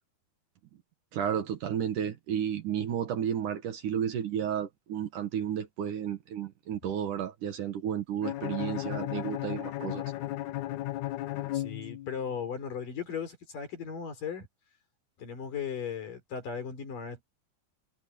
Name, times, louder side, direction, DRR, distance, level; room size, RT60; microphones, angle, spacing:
voice 1, 1.1-10.0, right 9 dB, 60° right, 2.8 m, -32 dB
Bowed string instrument, 8.2-12.3, left 15 dB, 75° left, 1.8 m, -35 dB
voice 2, 11.5-14.5 15.2-17.2, left 7 dB, 60° left, 5.9 m, -37 dB
omnidirectional pair, 4.5 m